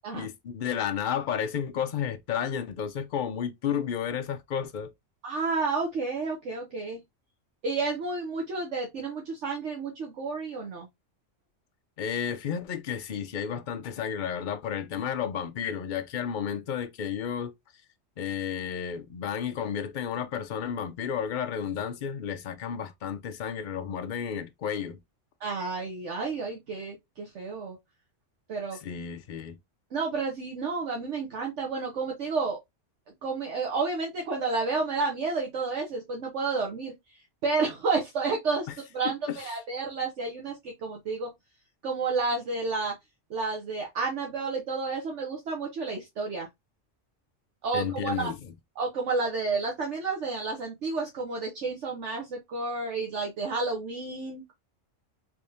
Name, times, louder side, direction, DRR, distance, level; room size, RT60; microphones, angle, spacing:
voice 1, 0.1-4.9 12.0-17.5 18.2-25.0 28.7-29.6 38.7-38.8 39.3-39.6 47.7-48.5, left 8 dB, 55° left, 0.5 m, -32 dB
voice 2, 5.2-7.0 7.6-10.9 25.4-27.8 28.5-28.8 29.9-32.6 33.2-36.9 37.4-38.7 38.9-41.3 41.8-42.9 43.3-46.5 47.6-48.3 48.8-54.5, right 4 dB, 70° right, 1.2 m, -31 dB
3.5 x 3.4 x 2.7 m
omnidirectional pair, 1.3 m